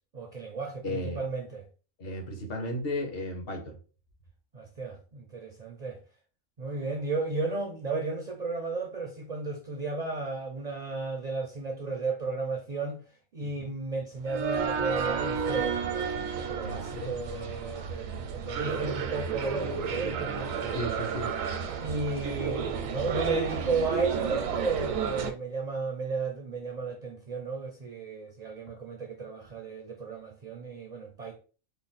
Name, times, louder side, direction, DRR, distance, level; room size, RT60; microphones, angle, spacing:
voice 1, 0.1-1.6 4.5-6.0 6.6-13.1 13.3-20.8 21.8-31.4, right 3 dB, 55° right, 0.4 m, -34 dB
voice 2, 0.8-1.2 2.0-3.8 13.4-13.7 16.6-17.1 20.7-21.3, left 1 dB, 50° left, 1.0 m, -35 dB
sound 1, 14.3-25.3, right 6 dB, 80° right, 0.9 m, -32 dB
3.3 x 2.0 x 4.0 m
omnidirectional pair, 1.3 m